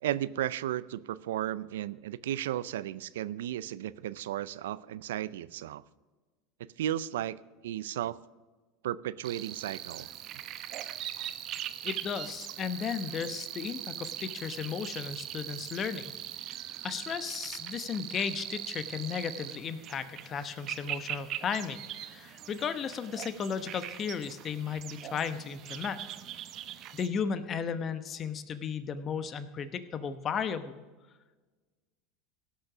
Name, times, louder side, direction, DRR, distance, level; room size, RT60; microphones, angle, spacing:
voice 1, 0.0-5.8 6.8-7.4 7.6-8.2 8.8-10.1, right 12 dB, 80° right, 18 dB, 0.4 m, -34 dB
sound 1, 9.2-27.1, right 12 dB, 50° right, 0.8 m, -41 dB
voice 2, 11.8-16.1 16.8-26.0 26.9-30.8, left 6 dB, 35° left, 12 dB, 1.0 m, -35 dB
17.0 x 6.3 x 6.0 m, 1.3 s
hypercardioid pair, 90°, 0 cm